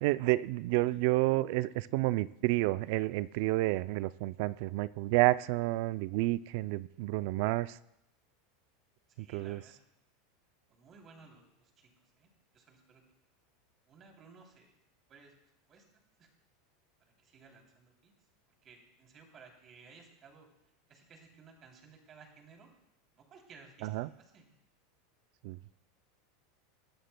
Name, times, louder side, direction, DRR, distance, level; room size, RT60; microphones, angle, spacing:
voice 1, 0.0-7.8 9.2-9.6 23.8-24.1 25.4-25.6, right 18 dB, 65° right, 17 dB, 0.3 m, -30 dB
voice 2, 9.1-9.8 10.7-13.0 13.9-14.7 15.1-15.3 15.7-15.8 16.2-16.3 17.0-18.1 18.6-20.5 20.9-22.7 23.1-24.5, right 5 dB, 35° right, 2 dB, 3.0 m, -58 dB
21.0 x 12.5 x 2.2 m, 0.82 s
supercardioid pair, 120°, 0 cm